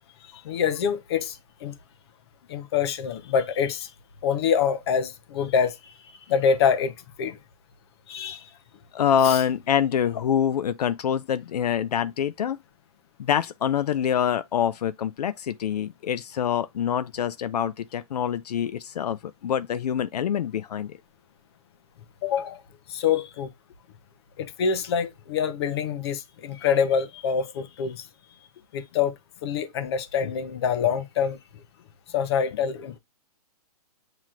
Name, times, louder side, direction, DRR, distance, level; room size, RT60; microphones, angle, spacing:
voice 1, 0.3-1.7 2.5-3.9 4.2-5.9 6.3-7.4 8.1-8.5 9.2-9.4 22.2-22.6 22.9-23.5 24.4-28.1 28.7-29.2 29.4-31.4 32.1-33.0, left 7 dB, 40° left, 0.7 m, -25 dB
voice 2, 8.9-12.6 13.2-21.0, left 9 dB, 80° left, 0.5 m, -25 dB
7.5 x 3.0 x 2.4 m
hypercardioid pair, 155°, 20 cm